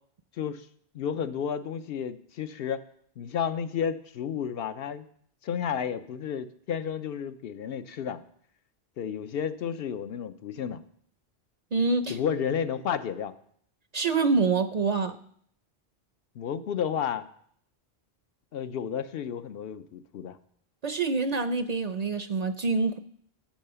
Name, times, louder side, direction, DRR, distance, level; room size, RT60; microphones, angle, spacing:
voice 1, 0.9-2.8 3.2-5.0 5.4-8.2 9.0-10.8 12.1-13.3 16.4-17.2 18.5-20.4, left 8 dB, 70° left, 11 dB, 0.8 m, -32 dB
voice 2, 11.7-12.2 13.9-15.2 20.8-23.0, right 4 dB, 50° right, 10 dB, 0.5 m, -26 dB
10.5 x 5.5 x 6.8 m, 0.63 s
omnidirectional pair, 1.0 m